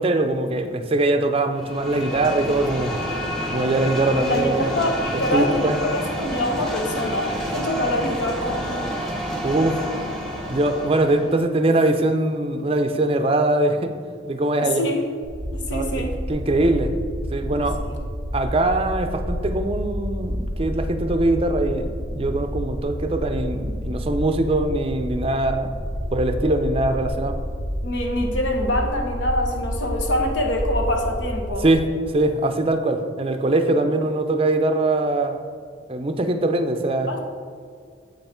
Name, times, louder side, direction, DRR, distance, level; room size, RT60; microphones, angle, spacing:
voice 1, 0.0-3.0 3.5-4.7 5.3-5.8 9.4-9.8 10.5-13.9 14.2-14.9 15.7-16.9 17.3-17.8 18.3-25.7 26.1-27.4 31.6-31.9 32.1-35.4 35.9-37.2, right 2 dB, 30° right, 7 dB, 0.5 m, -22 dB
sound 1, 1.5-11.4, equal, ahead, 1.0 m, -29 dB
voice 2, 4.3-8.9 14.8-15.0 15.5-16.1 17.9-18.0 27.8-31.6 37.1-37.2, left 1 dB, 70° left, 3 dB, 1.1 m, -25 dB
sound 2, 15.2-31.7, equal, 85° left, 1.6 m, -29 dB
7.6 x 5.6 x 4.3 m, 2.2 s
head